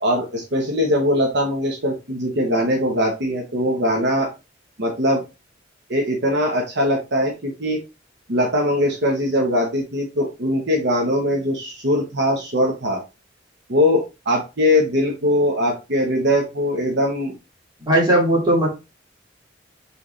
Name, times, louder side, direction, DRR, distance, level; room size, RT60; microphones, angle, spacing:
voice 1, 0.0-4.3 4.8-5.2 5.9-7.8 8.3-13.0 13.7-17.3, left 1 dB, 60° right, 0 dB, 1.0 m, -21 dB
voice 2, 17.8-18.7, right 1 dB, 25° right, -4 dB, 2.3 m, -17 dB
4.9 x 3.4 x 3.2 m, 0.27 s
head